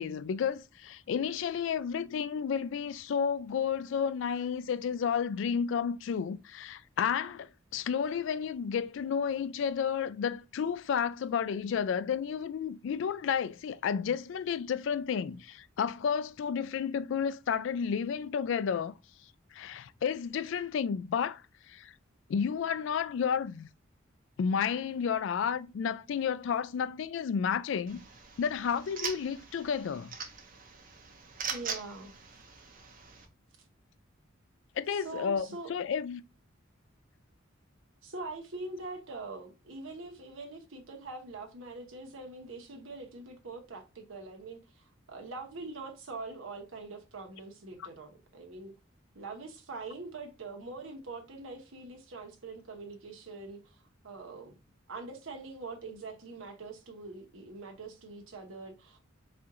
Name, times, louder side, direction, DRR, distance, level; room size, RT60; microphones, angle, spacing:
voice 1, 0.0-18.9 19.5-21.4 21.7-21.9 22.3-23.7 24.4-28.0 28.4-30.1 34.8-36.2, left 7 dB, 65° left, 0.3 m, -31 dB
sound 1, 27.9-33.3, right 6 dB, 45° right, 0.7 m, -42 dB
voice 2, 31.5-32.1 34.9-35.8 38.0-48.7 49.1-54.6 54.9-59.0, right 3 dB, 80° right, 1.0 m, -43 dB
4.3 x 2.5 x 3.7 m
head